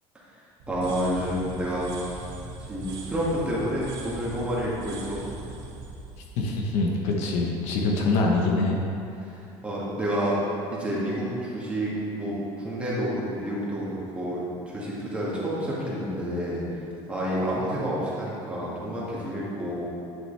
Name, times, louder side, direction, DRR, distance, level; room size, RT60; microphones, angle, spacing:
sound 1, 0.6-7.5, right 2 dB, 65° right, 1.8 m, -40 dB
voice 1, 0.7-2.0 2.7-5.2 9.2-10.4 10.7-16.6 17.1-19.8, equal, 10° right, -7 dB, 2.0 m, -29 dB
voice 2, 6.4-8.8, left 3 dB, 70° left, 0 dB, 1.1 m, -24 dB
10.5 x 6.4 x 3.4 m, 2.8 s
cardioid pair, 145°, 12 cm